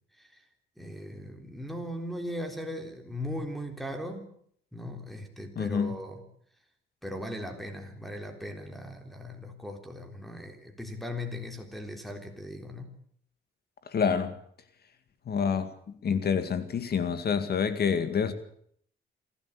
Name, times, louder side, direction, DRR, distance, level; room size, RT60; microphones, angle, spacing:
voice 1, 0.1-0.4 0.8-4.3 4.7-6.2 7.0-12.9, left 1 dB, ahead, 3.7 m, -38 dB
voice 2, 5.6-6.0 13.9-14.3 15.3-15.7 16.0-18.3, left 6 dB, 55° left, 2.2 m, -27 dB
27.0 x 12.5 x 8.3 m
cardioid pair, 90°, 20 cm